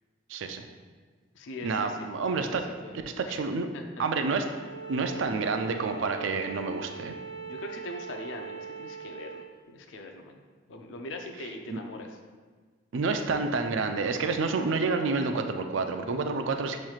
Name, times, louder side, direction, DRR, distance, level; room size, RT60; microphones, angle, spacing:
voice 1, 0.3-0.7 1.6-2.6 3.2-3.7 4.0-4.5 4.9-7.2 11.7-11.8 12.9-16.8, right 4 dB, 75° right, 6 dB, 0.4 m, -29 dB
voice 2, 1.3-2.1 2.3-3.0 3.2-3.4 3.7-4.0 7.4-10.4 10.7-12.2, left 2 dB, 75° left, 4 dB, 0.4 m, -41 dB
Bowed string instrument, 4.4-9.5, right 6 dB, 40° right, 1.4 m, -41 dB
7.1 x 3.1 x 2.4 m, 1.5 s
head